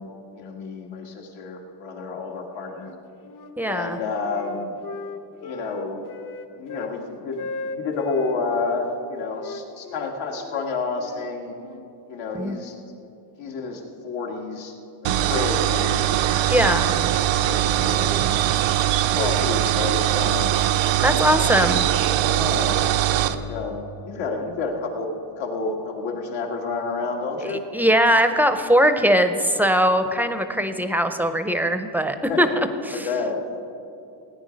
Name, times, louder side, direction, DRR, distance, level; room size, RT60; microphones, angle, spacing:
voice 1, 0.0-2.9 3.6-4.8 5.4-6.1 6.5-11.5 12.1-12.8 13.4-14.7 15.0-18.4 19.1-20.5 21.4-21.6 22.1-25.1 25.4-27.6 32.3-32.6 32.9-33.4, left 3 dB, 85° left, 1 dB, 1.9 m, -30 dB
Wind instrument woodwind instrument, 2.7-3.6 3.9-7.0 7.3-8.8 9.4-11.9, left 4 dB, 45° left, 0.8 m, -37 dB
voice 2, 3.6-4.0 12.3-12.6 16.5-16.9 21.0-21.9 27.4-32.5 32.9-33.1, equal, 5° right, 9 dB, 0.5 m, -20 dB
sound 1, 15.0-23.3, right 12 dB, 85° right, 0.7 m, -21 dB
17.5 x 9.6 x 5.1 m, 2.7 s
cardioid pair, 135°, 45 cm